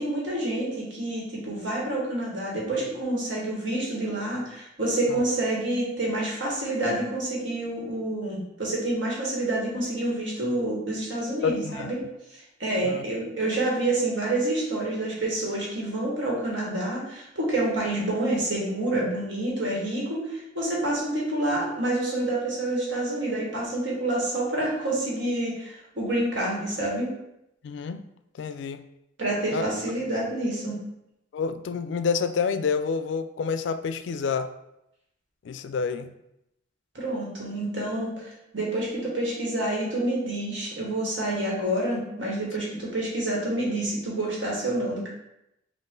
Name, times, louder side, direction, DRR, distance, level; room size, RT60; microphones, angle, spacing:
voice 1, 0.0-12.0 12.6-27.1 29.2-30.8 36.9-45.1, right 1 dB, 75° right, -3 dB, 1.5 m, -28 dB
voice 2, 11.4-11.9 12.8-13.0 27.6-28.0 28.4-28.8 29.5-29.6 31.3-34.5 35.4-36.1, left 6 dB, 65° left, 11 dB, 0.3 m, -28 dB
5.4 x 2.5 x 3.7 m, 0.84 s
head